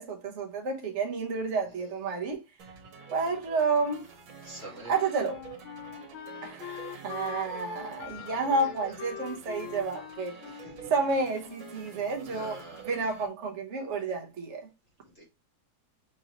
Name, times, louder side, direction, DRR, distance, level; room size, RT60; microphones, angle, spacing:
voice 1, 0.0-2.4 3.1-4.0 4.9-5.4 6.4-10.4 10.9-12.6 12.9-14.7, right 3 dB, 45° right, 1.0 m, -30 dB
voice 2, 1.7-2.0 4.4-4.9 8.1-9.2 10.4-10.9 11.7-11.9 12.3-13.0 15.0-15.3, right 2 dB, 40° left, 1.1 m, -48 dB
sound 1, 2.6-13.3, right 7 dB, 75° right, 1.8 m, -48 dB
Wind instrument woodwind instrument, 4.7-12.0, left 10 dB, 90° left, 1.5 m, -43 dB
6.2 x 2.7 x 2.9 m
omnidirectional pair, 2.2 m